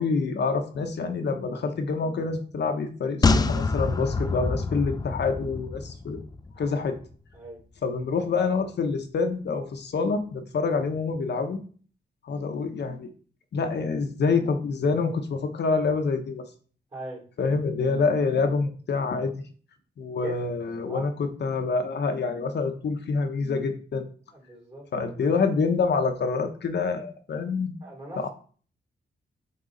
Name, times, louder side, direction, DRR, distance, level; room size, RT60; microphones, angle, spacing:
voice 1, 0.0-6.2 6.6-7.0 7.8-11.6 12.2-13.1 13.5-16.5 17.4-19.3 20.0-24.0 24.9-27.7 28.2-28.3, left 4 dB, 65° left, 5 dB, 0.8 m, -26 dB
sound 1, 3.2-6.7 7.0-7.1, left 3 dB, 20° left, 0.3 m, -26 dB
voice 2, 20.2-20.6 20.9-21.0 24.3-24.8 27.8-28.2, right 2 dB, 30° right, -3 dB, 3.1 m, -39 dB
7.9 x 3.9 x 3.8 m, 0.43 s
wide cardioid pair, 155°, 19 cm